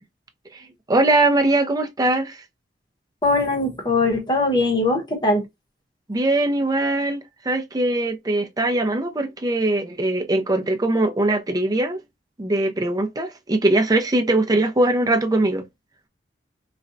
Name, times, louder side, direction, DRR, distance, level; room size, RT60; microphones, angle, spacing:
voice 1, 0.9-2.4 6.1-12.0 12.4-15.6, right 2 dB, 20° right, 0.5 m, -21 dB
voice 2, 3.2-5.4, left 2 dB, 25° left, 1.0 m, -21 dB
4.0 x 2.2 x 2.5 m
head